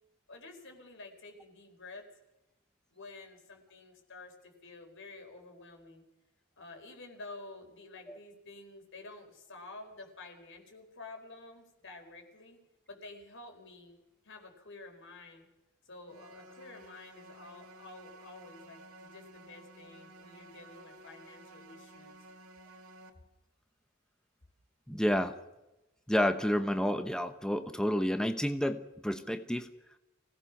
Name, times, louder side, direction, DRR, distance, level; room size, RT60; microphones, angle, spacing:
voice 1, 0.3-2.1 2.9-6.0 6.6-12.6 12.9-14.0 14.2-15.5 15.8-22.2, left 3 dB, 60° left, 4 dB, 4.6 m, -50 dB
sound 1, 16.1-23.1, right 1 dB, 80° right, 2.2 m, -54 dB
voice 2, 24.9-25.3 26.1-29.7, equal, 5° left, 7 dB, 0.9 m, -30 dB
25.0 x 17.5 x 6.0 m, 0.95 s
head